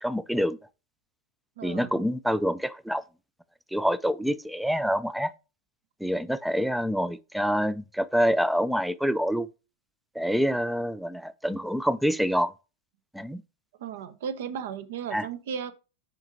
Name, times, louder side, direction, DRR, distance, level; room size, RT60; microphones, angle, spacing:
voice 1, 0.0-0.6 1.6-3.0 3.7-5.3 6.0-9.5 10.2-12.5 13.1-13.4 15.1-15.3, equal, ahead, 0.3 m, -26 dB
voice 2, 1.6-2.0 13.8-15.7, right 7 dB, 55° right, 0.7 m, -35 dB
7.2 x 5.3 x 2.7 m
figure-of-eight pair, 90°, 0 cm